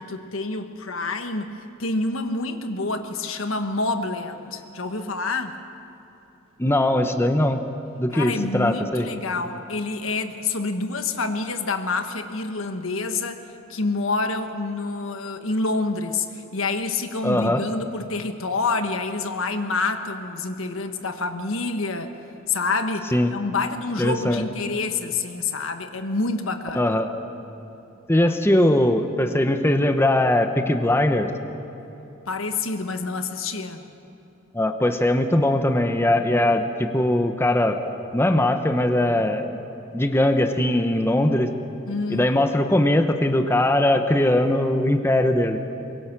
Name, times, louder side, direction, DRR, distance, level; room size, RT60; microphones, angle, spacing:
voice 1, 0.0-5.6 8.1-13.4 13.7-22.1 22.5-26.8 32.3-33.9 41.9-42.3, left 3 dB, 85° left, 7 dB, 1.4 m, -27 dB
voice 2, 6.6-7.6 8.0-9.1 17.2-17.6 23.1-23.3 24.0-24.5 26.7-27.1 28.1-31.3 34.5-37.8 38.1-39.5 39.9-41.5 42.1-45.6, left 1 dB, 10° left, 6 dB, 1.0 m, -20 dB
24.0 x 22.5 x 6.1 m, 3.0 s
head